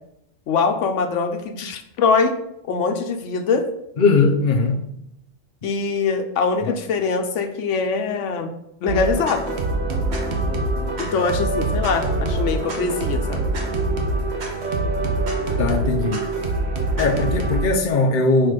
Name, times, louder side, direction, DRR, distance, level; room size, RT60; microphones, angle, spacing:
voice 1, 0.5-2.3 2.6-3.7 5.6-8.5 8.8-9.6 11.0-13.4, left 5 dB, 90° left, 1.1 m, -23 dB
voice 2, 4.0-4.9 6.6-6.7 15.6-16.3 17.0-18.5, left 3 dB, 45° left, 0.9 m, -19 dB
sound 1, 8.9-17.7, right 2 dB, 65° right, 1.4 m, -24 dB
6.2 x 4.8 x 5.0 m
omnidirectional pair, 1.2 m